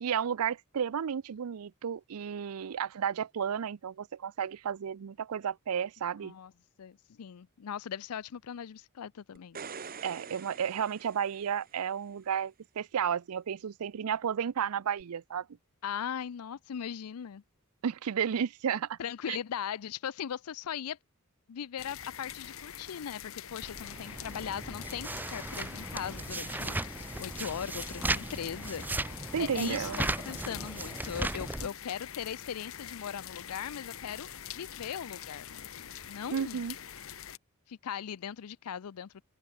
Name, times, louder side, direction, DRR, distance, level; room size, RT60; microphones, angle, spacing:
voice 1, 0.0-6.3 10.0-15.5 17.8-19.0 19.3-19.4 29.3-30.0 36.3-36.8, right 8 dB, 75° right, 0.5 m, -32 dB
voice 2, 6.8-9.6 15.8-17.4 19.0-21.0 21.5-28.9 29.4-34.3 34.5-36.6 37.7-39.2, left 8 dB, 85° left, 0.5 m, -39 dB
sound 1, 9.4-11.9 15.0-15.1, right 6 dB, 40° right, 1.1 m, -45 dB
sound 2, 21.8-37.4, left 9 dB, 65° left, 1.2 m, -45 dB
sound 3, 23.6-31.7, right 2 dB, 10° right, 0.4 m, -36 dB
open air
head